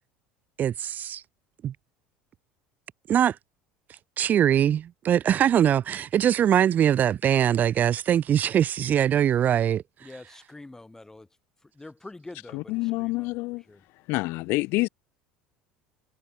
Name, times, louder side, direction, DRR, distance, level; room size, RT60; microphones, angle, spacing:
voice 1, 0.6-1.2 1.6-1.7 3.1-3.4 4.2-9.8, right 10 dB, 40° right, 2.5 m, -22 dB
voice 2, 10.0-11.3 11.7-13.3 13.7-13.8, left 2 dB, 10° left, 4.5 m, -45 dB
voice 3, 12.5-13.6 14.1-14.9, left 23 dB, 55° left, 1.1 m, -27 dB
figure-of-eight pair, 65°, 5 cm